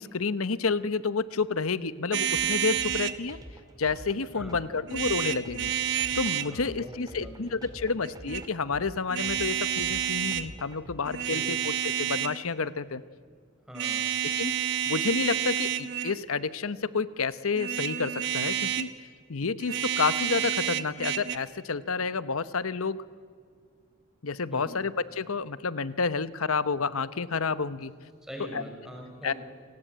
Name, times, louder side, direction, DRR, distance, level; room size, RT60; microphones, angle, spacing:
voice 1, 0.0-3.4 3.8-5.7 6.1-13.0 14.4-18.9 19.3-23.0 24.2-27.9 28.5-28.6 29.2-29.3, left 4 dB, 80° left, 15 dB, 0.9 m, -30 dB
sound 1, 2.1-3.2 4.9-6.5 8.0-8.4 9.1-10.5 11.0-12.4 13.7-16.2 17.5-18.9 19.6-21.4, right 9 dB, 55° right, 1.0 m, -29 dB
sound 2, 2.3-11.0, equal, 20° right, 2.5 m, -46 dB
voice 2, 4.3-4.8 6.4-7.9 11.3-11.7 13.6-14.1 24.5-24.8 28.2-29.4, equal, ahead, 1 dB, 5.5 m, -44 dB
29.0 x 19.0 x 9.2 m, 2.1 s
head